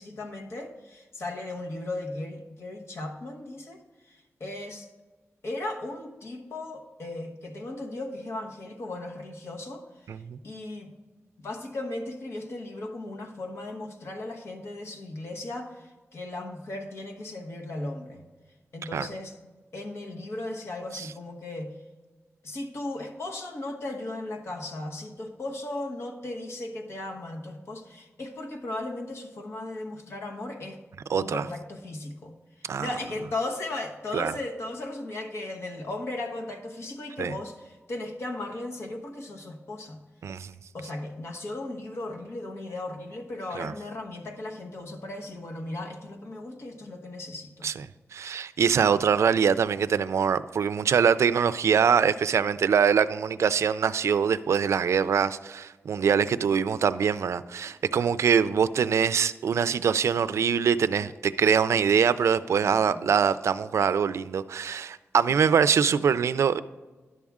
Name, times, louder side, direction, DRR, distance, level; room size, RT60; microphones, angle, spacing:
voice 1, 0.0-4.9 5.4-10.2 10.4-10.9 11.4-18.2 18.7-19.3 19.7-21.7 22.4-30.8 31.1-40.0 40.7-47.7 62.6-63.1, left 2 dB, 65° left, 1.1 m, -36 dB
voice 2, 10.1-10.4 18.9-19.1 20.9-21.1 31.1-31.4 32.6-32.9 34.1-34.3 37.2-37.3 40.2-40.5 43.6-43.7 47.6-47.9 48.1-66.6, right 7 dB, 90° right, 0.3 m, -23 dB
11.0 x 7.2 x 3.6 m
wide cardioid pair, 135°, 5 cm